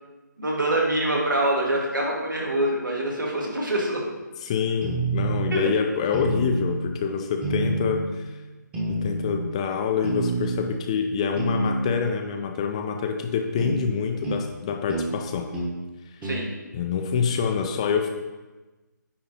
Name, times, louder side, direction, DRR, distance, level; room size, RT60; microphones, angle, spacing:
voice 1, 0.4-4.1 5.5-5.6 16.2-16.5, right 1 dB, 85° right, -2 dB, 2.2 m, -25 dB
voice 2, 4.4-8.3 8.9-15.5 16.7-18.1, left 6 dB, 20° left, 4 dB, 0.4 m, -26 dB
sound 1, 4.8-5.5 6.1-6.8 7.4-8.1 8.7-9.4 10.0-10.7 11.4-12.0 13.6-13.8 14.2-14.5 14.9-15.1 15.5-15.8 16.2-16.4, right 2 dB, 10° right, 1.0 m, -27 dB
9.7 x 3.7 x 4.3 m, 1.2 s
figure-of-eight pair, 150°, 10 cm